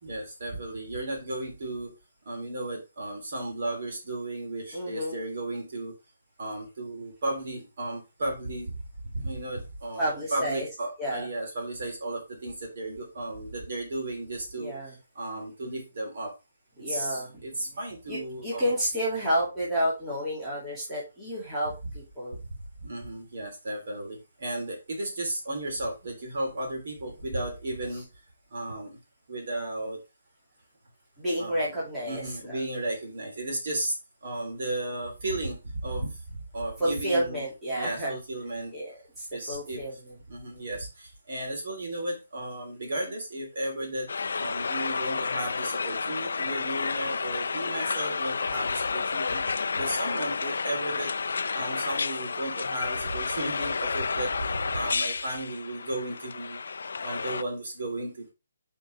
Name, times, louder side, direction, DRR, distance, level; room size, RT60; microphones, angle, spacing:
voice 1, 0.0-1.9 2.2-5.9 6.4-16.3 16.8-18.7 22.8-28.1 28.5-29.0 29.3-30.0 31.4-31.7 32.1-37.4 37.7-38.7 39.3-39.8 40.3-44.1 44.4-49.4 49.7-51.1 51.5-56.6 57.0-58.3, right 1 dB, 45° right, 1 dB, 3.1 m, -34 dB
voice 2, 4.7-5.2 10.0-10.7 11.0-11.3 14.6-14.9 16.8-17.4 18.1-22.4 31.2-32.6 36.8-38.1 38.7-39.9, equal, 5° right, -9 dB, 2.2 m, -30 dB
sound 1, 44.1-57.4, left 5 dB, 70° left, 0.4 m, -31 dB
7.1 x 4.6 x 3.3 m, 0.26 s
hypercardioid pair, 175°, 0 cm